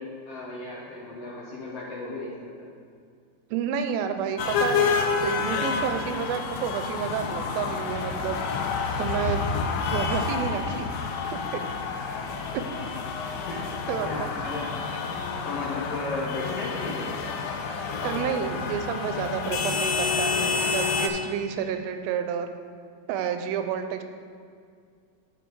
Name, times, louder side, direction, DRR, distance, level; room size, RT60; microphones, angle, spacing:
voice 1, 0.0-2.7 13.4-13.7 14.0-14.8 15.4-17.3, left 2 dB, 65° left, -6 dB, 1.6 m, -35 dB
voice 2, 3.5-4.9 5.2-8.4 9.0-10.9 11.3-11.6 12.5-12.6 13.9-14.3 18.0-22.5 23.1-24.0, right 8 dB, 90° right, 7 dB, 2.4 m, -30 dB
sound 1, 4.4-21.1, left 5 dB, 85° left, 2.4 m, -29 dB
10.5 x 5.3 x 4.6 m, 2.2 s
omnidirectional pair, 4.2 m